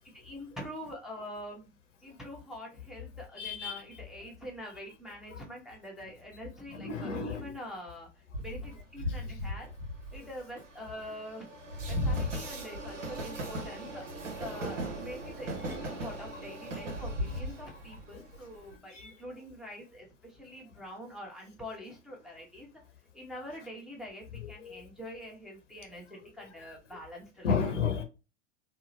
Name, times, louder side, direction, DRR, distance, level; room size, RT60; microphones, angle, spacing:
voice 1, 0.0-1.7 2.0-9.7 10.1-11.5 11.9-22.7 23.1-27.6, equal, ahead, -2 dB, 0.8 m, -45 dB
voice 2, 3.4-3.7 5.3-5.4 6.7-7.5 18.1-18.2 18.9-19.1 24.4-24.7 27.4-28.0, left 6 dB, 85° left, 6 dB, 0.7 m, -32 dB
Train, 8.3-18.7, equal, 85° right, 0.8 m, -37 dB
2.7 x 2.0 x 2.7 m, 0.29 s
hypercardioid pair, 90°, 36 cm